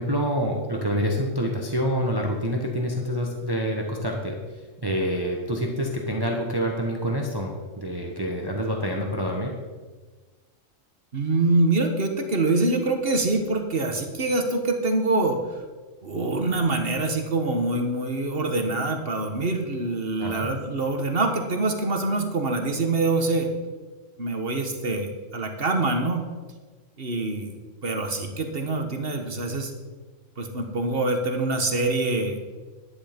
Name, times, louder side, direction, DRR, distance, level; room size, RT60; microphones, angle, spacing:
voice 1, 0.0-9.5 20.2-20.5, equal, 20° right, 0 dB, 1.2 m, -27 dB
voice 2, 11.1-15.4 16.0-23.5 24.2-26.2 27.0-29.7 30.4-32.4, right 2 dB, 50° right, 5 dB, 1.5 m, -25 dB
11.0 x 9.8 x 5.2 m, 1.3 s
omnidirectional pair, 1.3 m